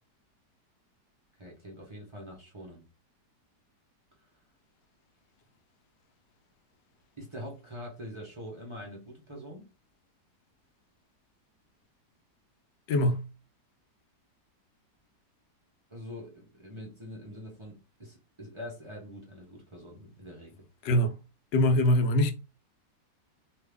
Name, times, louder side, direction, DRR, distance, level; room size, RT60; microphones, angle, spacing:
voice 1, 1.4-2.8 7.2-9.7 15.9-20.6, equal, 35° right, 0.4 m, -44 dB
voice 2, 12.9-13.3 20.8-21.2 21.5-22.3, left 1 dB, 85° left, 1.3 m, -23 dB
2.9 x 2.4 x 3.4 m
omnidirectional pair, 1.9 m